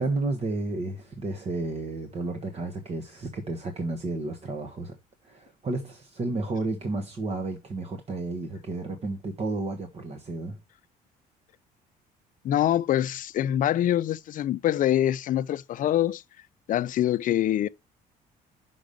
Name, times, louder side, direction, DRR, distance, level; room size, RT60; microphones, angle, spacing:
voice 1, 0.0-4.9 5.2-10.6, right 2 dB, 35° right, 1.2 m, -32 dB
voice 2, 12.4-16.2 16.7-17.7, left 12 dB, 50° left, 0.5 m, -24 dB
5.9 x 5.3 x 5.1 m
cardioid pair, 110°, 17 cm